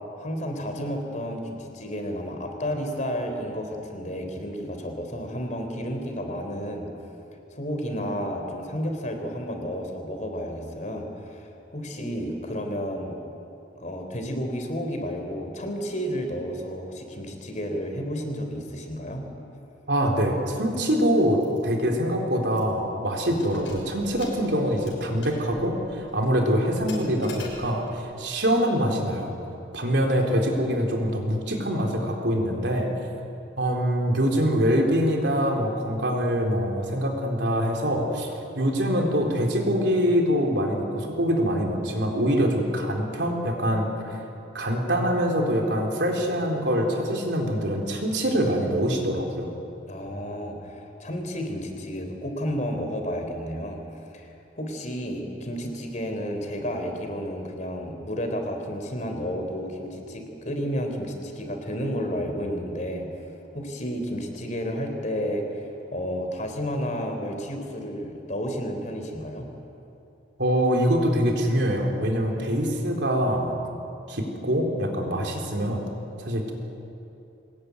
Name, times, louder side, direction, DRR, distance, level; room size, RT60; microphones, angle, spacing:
voice 1, 0.1-6.9 7.5-13.2 13.8-19.2 49.9-53.8 54.1-63.1 63.5-69.5, equal, 40° left, 4 dB, 3.6 m, -31 dB
voice 2, 19.9-29.3 29.7-32.9 33.6-44.2 44.5-49.5 70.4-73.5 74.1-75.8 76.2-76.5, equal, 65° right, 1 dB, 3.8 m, -24 dB
Keys jangling, 21.4-21.6 21.9-22.0 22.5-22.9 23.3-28.0, left 2 dB, 90° left, 6.4 m, -45 dB
23.5 x 20.5 x 9.6 m, 2.9 s
head